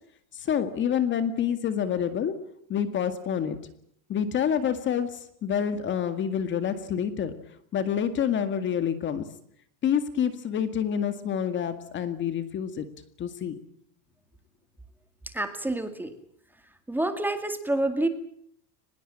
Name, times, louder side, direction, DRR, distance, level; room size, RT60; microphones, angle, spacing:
voice 1, 0.3-2.4 2.7-3.6 4.1-7.3 7.7-9.2 9.8-12.9 13.2-13.6, left 8 dB, 25° left, 10 dB, 2.0 m, -27 dB
voice 2, 15.3-16.1 16.9-18.1, right 1 dB, 5° right, 8 dB, 2.1 m, -28 dB
24.0 x 21.0 x 8.9 m, 0.66 s
supercardioid pair, 155°, 44 cm